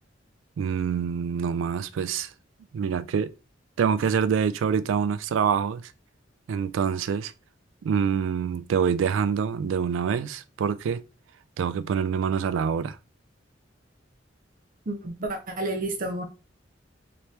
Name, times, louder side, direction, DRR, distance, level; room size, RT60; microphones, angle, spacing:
voice 1, 0.6-2.3 2.7-3.3 3.8-5.9 6.5-7.3 7.8-11.0 11.6-13.0, right 7 dB, 80° right, 0.3 m, -26 dB
voice 2, 14.9-16.2, right 2 dB, 45° right, 0.7 m, -30 dB
2.9 x 2.8 x 3.3 m
head